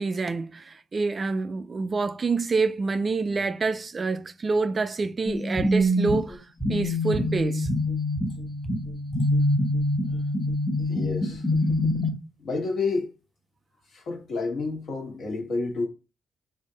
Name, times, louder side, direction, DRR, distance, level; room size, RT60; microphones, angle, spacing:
voice 1, 0.0-7.7, right 4 dB, 35° right, 0.3 m, -27 dB
sound 1, 5.3-12.1, left 1 dB, 10° left, 1.1 m, -25 dB
voice 2, 10.9-11.5 12.4-13.1 13.9-15.9, left 3 dB, 60° left, 1.5 m, -29 dB
3.4 x 2.6 x 3.9 m
cardioid pair, 90°, 0 cm